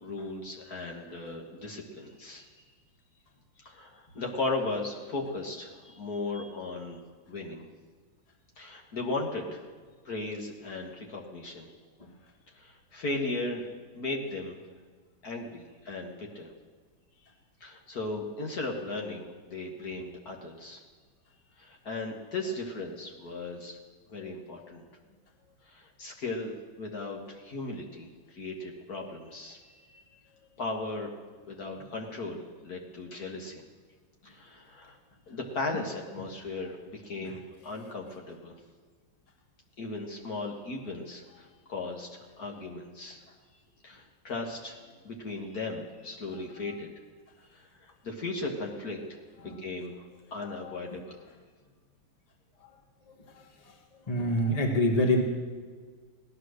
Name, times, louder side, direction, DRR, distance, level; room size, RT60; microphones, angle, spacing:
voice 1, 0.0-2.5 3.6-7.0 7.3-7.7 8.6-9.6 10.1-11.7 12.6-13.7 13.9-14.6 15.2-16.5 17.6-20.8 21.6-23.8 24.1-24.8 25.7-30.1 30.6-31.1 31.4-33.6 34.2-35.0 35.3-38.6 39.8-43.2 43.8-46.9 47.5-50.0 50.3-51.3, left 2 dB, 55° left, 0 dB, 2.0 m, -37 dB
voice 2, 50.5-51.0 52.6-52.7 53.1-53.8 54.1-55.2, left 1 dB, 20° left, 2 dB, 1.5 m, -28 dB
17.5 x 11.0 x 6.5 m, 1.5 s
omnidirectional pair, 2.1 m